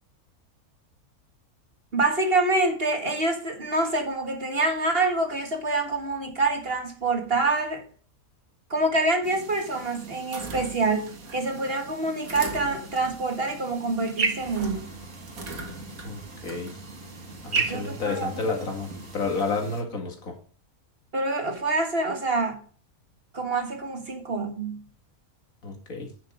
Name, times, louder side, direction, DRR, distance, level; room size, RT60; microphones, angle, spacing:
voice 1, 1.9-7.8 8.7-14.8 17.7-18.4 21.1-22.6 23.3-24.8, right 2 dB, 40° right, 1.8 m, -26 dB
sound 1, 9.2-19.8, right 4 dB, 70° right, 2.0 m, -36 dB
sound 2, 14.4-19.4, right 1 dB, 30° left, 2.6 m, -47 dB
voice 2, 16.0-16.8 17.4-20.3 25.6-26.1, left 4 dB, 65° left, 2.6 m, -30 dB
10.0 x 6.6 x 5.0 m
omnidirectional pair, 1.5 m